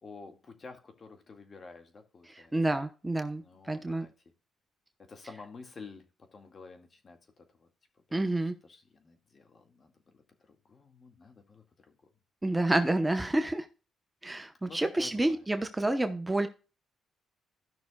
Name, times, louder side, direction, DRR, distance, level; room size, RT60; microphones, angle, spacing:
voice 1, 0.0-2.5 3.4-4.1 5.0-7.7 8.1-12.0 14.6-15.5, left 4 dB, 40° left, 1.9 m, -51 dB
voice 2, 2.3-4.1 8.1-8.5 12.4-13.7 14.2-16.5, right 2 dB, 15° right, 0.9 m, -29 dB
15.5 x 6.0 x 2.3 m
cardioid pair, 90°, 0 cm